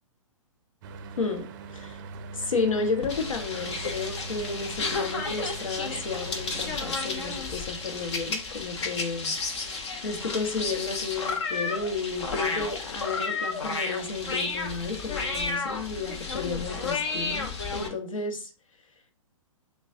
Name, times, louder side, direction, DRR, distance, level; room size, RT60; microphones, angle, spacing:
Mechanical fan, 0.8-7.4, right 3 dB, 35° right, 0.5 m, -41 dB
voice 1, 2.3-9.3 10.0-18.5, left 4 dB, 70° left, 5 dB, 1.2 m, -32 dB
sound 1, 3.0-17.9, left 4 dB, 55° left, 0.9 m, -32 dB
7.0 x 2.3 x 2.7 m, 0.36 s
figure-of-eight pair, 120°, 18 cm